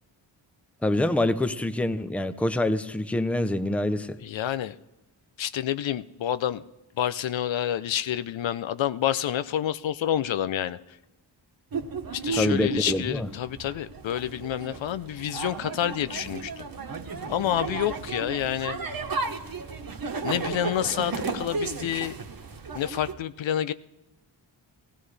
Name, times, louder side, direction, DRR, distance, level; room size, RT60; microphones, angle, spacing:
voice 1, 0.8-4.2 12.4-13.3, left 1 dB, 5° left, 11 dB, 0.6 m, -26 dB
voice 2, 4.2-4.8 5.4-6.6 7.0-10.8 12.1-16.5 17.3-18.8 20.2-22.2 22.7-23.7, left 11 dB, 70° left, 13 dB, 0.6 m, -28 dB
sound 1, 11.7-23.1, right 4 dB, 45° right, 1.2 m, -34 dB
16.5 x 16.0 x 3.3 m, 1.0 s
cardioid pair, 65°, 48 cm